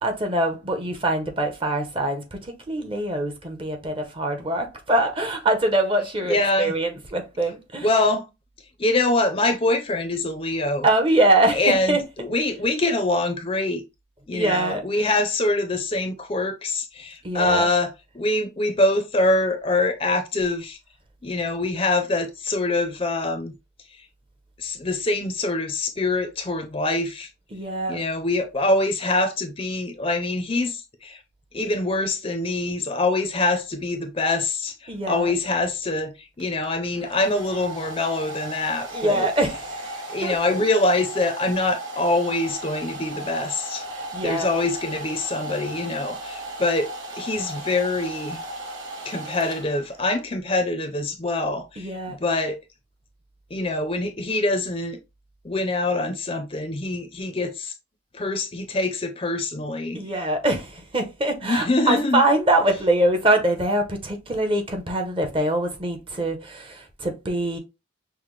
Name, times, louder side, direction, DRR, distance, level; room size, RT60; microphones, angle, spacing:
voice 1, 0.0-7.9 10.8-12.3 14.3-15.1 17.2-17.7 27.5-28.0 34.9-35.3 38.9-40.3 43.9-44.5 51.8-52.2 59.9-67.6, right 1 dB, 25° right, 0.8 m, -24 dB
voice 2, 6.3-6.7 7.8-8.3 8.8-10.9 11.5-13.8 14.3-20.8 21.2-23.5 24.6-27.3 27.9-31.2 31.5-39.3 40.1-43.8 44.2-48.4 49.1-52.6 53.5-55.0 55.4-57.7 58.1-60.0 61.4-62.2, left 2 dB, 25° left, 0.5 m, -24 dB
Domestic sounds home sounds, 36.4-50.1, right 1 dB, 75° right, 1.3 m, -36 dB
5.7 x 2.1 x 3.1 m
head